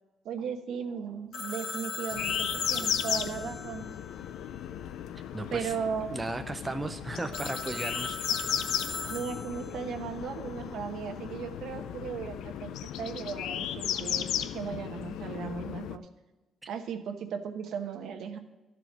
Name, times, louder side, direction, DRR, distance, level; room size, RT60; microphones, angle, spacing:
voice 1, 0.2-3.8 5.5-6.2 9.1-12.7 13.0-16.1 16.7-18.4, right 7 dB, 75° right, 6 dB, 1.0 m, -36 dB
Telephone, 1.3-5.0 7.3-9.9, left 4 dB, 60° left, 1.5 m, -38 dB
sound 1, 2.1-16.0, left 10 dB, 85° left, 0.4 m, -35 dB
voice 2, 5.3-5.7 6.1-8.7, right 2 dB, 15° right, 7 dB, 0.5 m, -36 dB
12.0 x 4.9 x 6.0 m, 1.1 s
cardioid pair, 140°, 0 cm